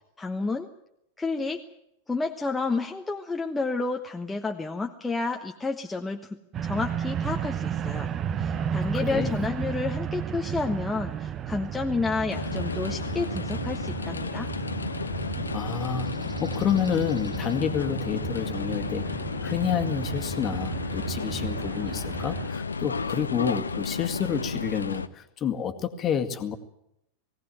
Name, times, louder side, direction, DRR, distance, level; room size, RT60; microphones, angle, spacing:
voice 1, 0.2-0.7 1.2-1.6 2.1-8.1 8.4-14.5, left 3 dB, 10° left, 2 dB, 1.2 m, -30 dB
sound 1, 6.5-22.5, right 8 dB, 30° right, 0.9 m, -33 dB
voice 2, 8.9-9.4 15.5-19.1 19.4-26.6, left 7 dB, 30° left, 7 dB, 2.0 m, -29 dB
sound 2, 12.3-25.1, left 4 dB, 75° left, 0.9 m, -33 dB
20.0 x 17.5 x 9.2 m, 0.79 s
figure-of-eight pair, 90°, 0 cm